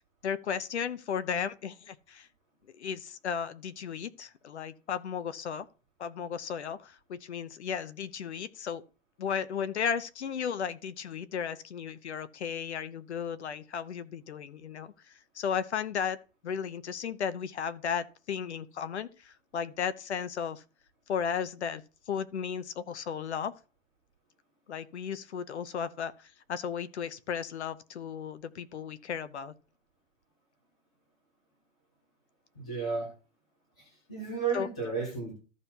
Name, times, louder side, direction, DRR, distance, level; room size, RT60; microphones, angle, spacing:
voice 1, 0.2-2.3 2.7-5.7 6.0-8.8 9.2-16.2 16.4-20.6 21.1-21.8 22.1-23.5 24.7-29.5 34.5-34.7, left 7 dB, 55° left, 0.8 m, -35 dB
voice 2, 32.6-33.1 34.1-35.3, right 5 dB, 5° left, 0.5 m, -32 dB
14.5 x 5.4 x 2.9 m
hypercardioid pair, 175°, 40 cm